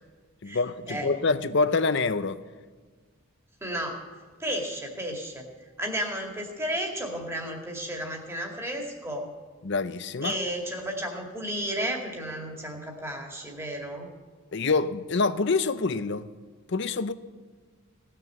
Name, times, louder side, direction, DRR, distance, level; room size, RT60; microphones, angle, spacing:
voice 1, 0.4-2.4 9.6-10.4 14.5-16.3 16.7-17.1, left 4 dB, 50° left, 0.6 m, -26 dB
voice 2, 3.6-4.0 4.4-5.5 5.8-9.3 10.2-14.1, right 1 dB, 10° right, 2.1 m, -33 dB
17.5 x 6.8 x 8.4 m
head